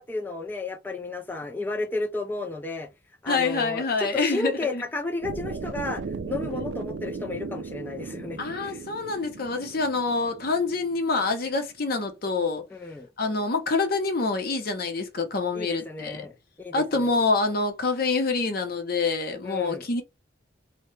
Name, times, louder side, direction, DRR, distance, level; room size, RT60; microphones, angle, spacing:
voice 1, 0.0-2.9 3.2-8.8 12.7-13.1 15.5-17.2 19.4-19.9, left 3 dB, 10° left, 0.3 m, -33 dB
voice 2, 3.3-4.8 8.4-12.6 13.2-16.3 16.7-20.0, left 3 dB, 50° left, 0.7 m, -26 dB
sound 1, 5.2-11.3, right 4 dB, 65° right, 0.4 m, -36 dB
2.7 x 2.1 x 3.1 m
head